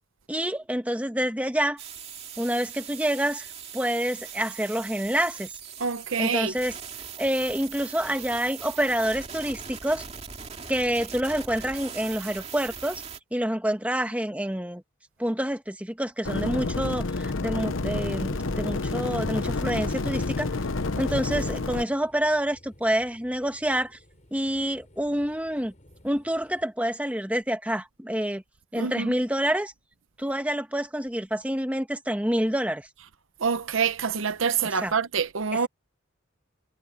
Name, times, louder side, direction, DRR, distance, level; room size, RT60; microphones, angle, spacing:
voice 1, 0.3-1.8 2.4-3.5 3.7-5.5 6.2-6.7 7.2-10.0 10.7-13.0 13.3-14.8 15.2-20.5 21.0-24.0 24.3-25.7 26.0-28.4 28.7-29.7 30.2-32.9 34.8-34.9, right 1 dB, 5° right, 1.4 m, -27 dB
sound 1, 1.8-13.2, right 7 dB, 30° right, 2.4 m, -40 dB
voice 2, 5.8-6.5 28.8-29.1 33.4-35.7, right 6 dB, 80° right, 0.8 m, -26 dB
sound 2, 16.2-21.8, left 3 dB, 75° left, 0.9 m, -29 dB
sound 3, 18.2-26.7, equal, 35° left, 7.3 m, -55 dB
head